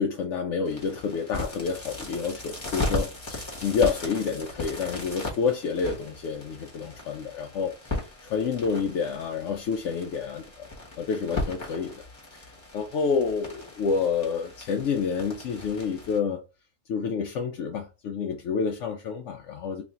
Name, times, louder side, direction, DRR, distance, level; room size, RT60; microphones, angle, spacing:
voice 1, 0.0-10.4 11.0-12.0 12.3-12.5 12.7-16.4 16.9-19.8, left 5 dB, 75° left, 0.9 m, -28 dB
sound 1, 0.7-16.2, left 2 dB, 25° left, 1.1 m, -37 dB
3.1 x 2.5 x 4.1 m
omnidirectional pair, 1.3 m